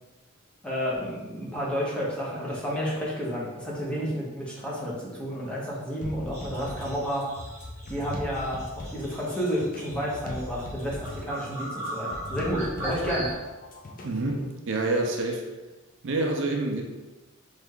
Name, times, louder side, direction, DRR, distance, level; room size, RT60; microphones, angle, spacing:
voice 1, 0.6-7.3 7.9-13.3, equal, 5° left, -6 dB, 0.9 m, -31 dB
sound 1, 6.0-14.5, left 1 dB, 40° left, 0.6 m, -40 dB
sound 2, 6.3-13.3, right 1 dB, 15° right, 1.5 m, -39 dB
voice 2, 14.0-15.4 16.0-16.8, right 2 dB, 60° right, 2 dB, 0.5 m, -27 dB
3.4 x 3.2 x 3.7 m, 1.1 s
head